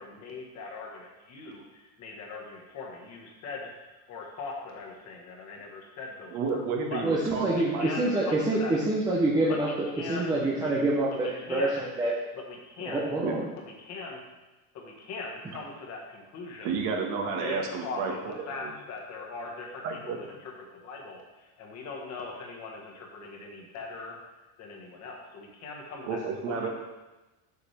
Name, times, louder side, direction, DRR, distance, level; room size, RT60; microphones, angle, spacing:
voice 1, 0.0-7.0 7.5-8.7 9.5-10.3 11.1-11.8 12.4-13.1 13.6-14.2 14.7-16.8 17.4-24.2 24.6-26.2 26.5-26.7, left 3 dB, 35° left, 0 dB, 1.4 m, -41 dB
voice 2, 6.3-7.9 13.2-13.3 16.6-18.4 18.6-18.7 19.8-20.2 26.1-26.7, right 4 dB, 70° right, 2 dB, 1.5 m, -31 dB
voice 3, 7.0-9.7 10.1-12.1 12.9-13.5, right 2 dB, 10° right, -4 dB, 0.4 m, -26 dB
8.1 x 6.9 x 3.3 m, 1.1 s
cardioid pair, 175°, 43 cm